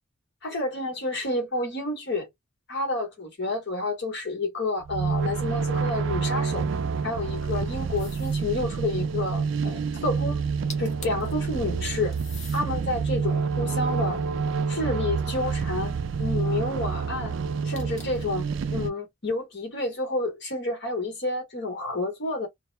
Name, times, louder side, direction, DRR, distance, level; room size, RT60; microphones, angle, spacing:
voice 1, 0.4-2.3 2.7-6.6 7.0-10.4 10.8-12.1 12.5-14.2 14.7-15.9 16.2-17.3 17.6-18.5 18.7-22.5, left 2 dB, 55° left, 1.1 m, -29 dB
sound 1, 4.9-18.9, right 5 dB, 60° right, 0.3 m, -28 dB
sound 2, 8.0-8.5 10.4-10.5 10.7-11.3 12.1-12.7 13.3-14.8 17.7-18.3, left 4 dB, 35° left, 0.7 m, -45 dB
2.2 x 2.0 x 3.1 m
head